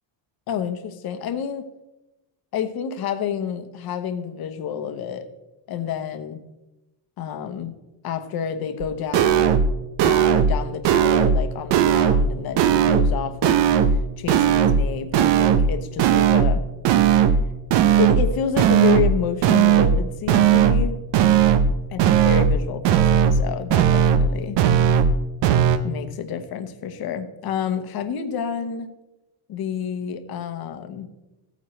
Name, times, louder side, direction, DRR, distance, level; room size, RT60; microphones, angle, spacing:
voice 1, 0.5-1.7 2.5-5.3 5.7-6.4 7.2-7.7 8.0-9.6 10.0-13.6 14.2-16.6 18.0-21.0 21.9-24.6 25.8-28.9 29.5-31.1, left 8 dB, 50° left, 9 dB, 1.1 m, -29 dB
sound 1, 8.8-8.9 9.1-9.7 10.0-10.6 10.8-11.4 11.7-12.3 12.6-13.1 13.4-14.0 14.3-14.9 15.1-15.7 16.0-16.6 16.8-17.4 17.7-18.3 18.6-19.1 19.4-20.0 20.3-20.9 21.1-21.7 22.0-22.6 22.8-23.4 23.7-24.3 24.6-25.1 25.4-25.8, right 8 dB, 65° right, 0.8 m, -17 dB
16.0 x 9.3 x 3.2 m, 0.99 s
cardioid pair, 165°, 46 cm